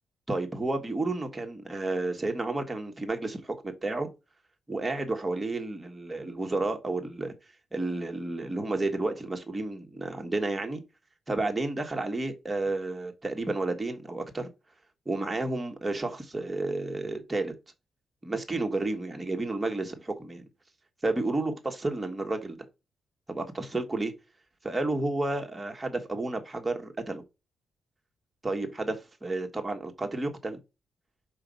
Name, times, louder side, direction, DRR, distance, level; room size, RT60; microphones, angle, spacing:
voice 1, 0.3-4.1 4.7-7.3 7.7-10.8 11.3-14.5 15.1-17.5 18.2-20.4 21.0-22.6 23.3-24.1 24.6-27.2 28.4-30.6, right 2 dB, 15° right, 1.8 m, -31 dB
5.6 x 5.2 x 5.3 m
cardioid pair, 100°, 0 cm